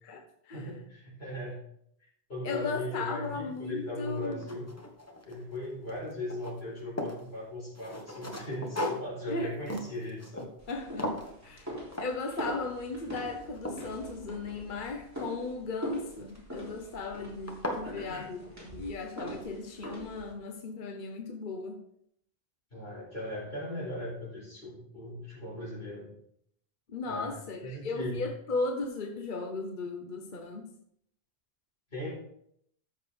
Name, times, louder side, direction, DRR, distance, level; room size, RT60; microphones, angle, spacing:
voice 1, 0.0-0.7 2.4-4.4 9.3-9.5 10.7-11.1 11.4-11.7 12.0-21.8 26.9-30.7, left 3 dB, 50° left, 4 dB, 1.1 m, -36 dB
voice 2, 0.5-1.6 2.3-4.7 5.2-10.5 17.8-18.2 22.7-26.1 27.0-28.2 31.9-32.1, left 1 dB, 70° left, -6 dB, 4.7 m, -38 dB
sound 1, 3.6-3.7 4.1-5.6 5.9-7.2 7.7-10.7 11.0-11.3 11.9-12.1 12.4-12.8 13.2-14.8 16.3-16.7 17.1-17.2 17.5-17.9, left 1 dB, 15° left, 1.2 m, -38 dB
sound 2, 10.6-20.3, right 1 dB, 15° right, 3.3 m, -42 dB
13.5 x 6.6 x 3.5 m, 0.71 s
omnidirectional pair, 1.1 m